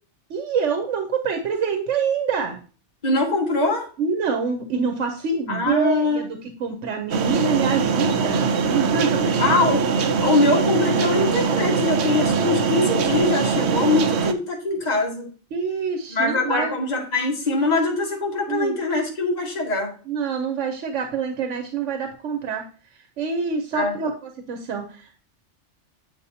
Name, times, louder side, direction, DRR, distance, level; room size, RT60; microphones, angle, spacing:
voice 1, 0.3-2.6 4.0-9.5 15.5-16.8 18.5-18.8 20.1-22.6 22.9-24.1 24.5-25.2, right 5 dB, 85° right, 5 dB, 1.2 m, -26 dB
voice 2, 3.0-3.9 5.5-6.2 9.4-15.3 16.1-19.9 23.7-23.9, left 3 dB, 35° left, -1 dB, 1.7 m, -22 dB
sound 1, 7.1-14.3, right 5 dB, 65° right, 0.9 m, -22 dB
8.2 x 5.1 x 2.7 m, 0.38 s
omnidirectional pair, 1.2 m